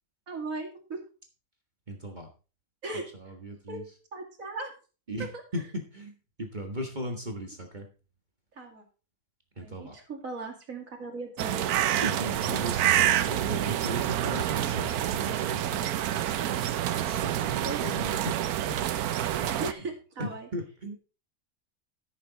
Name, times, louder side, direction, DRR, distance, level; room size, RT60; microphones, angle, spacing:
voice 1, 0.3-1.0 2.8-3.0 3.7-4.7 8.6-8.8 9.6-11.7 17.6-18.0 19.6-20.5, right 3 dB, 65° right, 2 dB, 2.8 m, -38 dB
voice 2, 1.9-2.3 3.2-3.8 5.1-6.1 6.4-7.9 9.6-10.0 11.9-16.3 17.0-18.3 19.4-19.6 20.2-21.0, equal, 30° right, 3 dB, 1.6 m, -37 dB
sound 1, 11.4-19.7, right 11 dB, 90° right, 1.2 m, -28 dB
13.5 x 6.8 x 4.0 m, 0.34 s
omnidirectional pair, 1.5 m